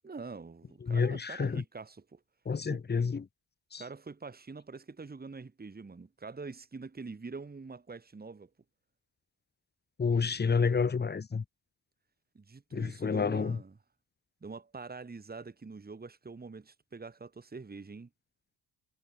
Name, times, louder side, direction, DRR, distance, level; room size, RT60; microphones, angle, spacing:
voice 1, 0.0-2.2 2.7-2.8 3.8-8.5 12.3-13.7 14.4-18.1, right 4 dB, 20° right, 2.1 m, -45 dB
voice 2, 0.8-1.6 2.4-3.3 3.7-3.8 10.0-11.4 12.7-13.6, left 5 dB, 25° left, 1.0 m, -29 dB
cardioid pair, 115°, 42 cm